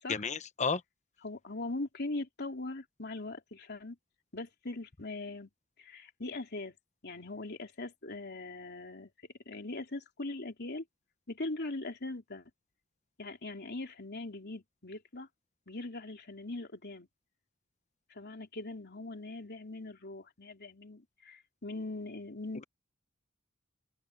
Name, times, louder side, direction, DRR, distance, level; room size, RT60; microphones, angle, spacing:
voice 1, 0.1-0.8, left 5 dB, 35° left, 1.1 m, -31 dB
voice 2, 1.2-4.0 4.3-5.5 5.8-6.8 7.0-9.1 9.5-10.8 11.3-12.5 13.2-15.3 15.7-17.1 18.1-22.7, left 2 dB, 55° left, 3.5 m, -41 dB
head